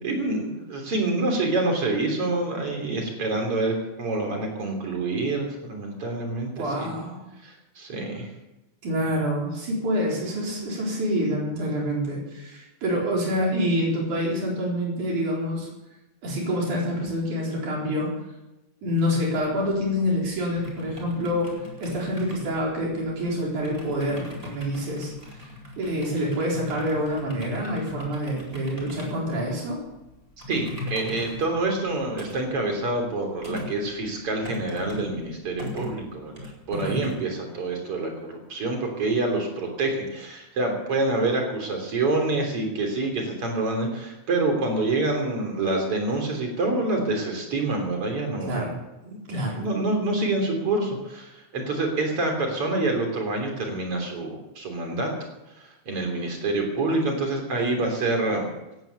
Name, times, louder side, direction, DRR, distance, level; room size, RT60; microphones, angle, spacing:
voice 1, 0.0-6.9 7.4-8.3 30.5-48.7 49.0-49.2 49.6-55.1 55.6-58.5, right 2 dB, 50° right, 3 dB, 4.2 m, -27 dB
voice 2, 6.6-7.2 8.8-15.7 16.2-18.1 18.8-21.5 21.8-25.5 25.8-29.8 36.7-37.0 48.4-48.7 49.3-49.6, equal, 85° right, -3 dB, 5.7 m, -27 dB
sound 1, 19.5-37.1, left 2 dB, 10° right, 4.6 m, -40 dB
18.0 x 10.5 x 7.0 m, 0.97 s
omnidirectional pair, 3.4 m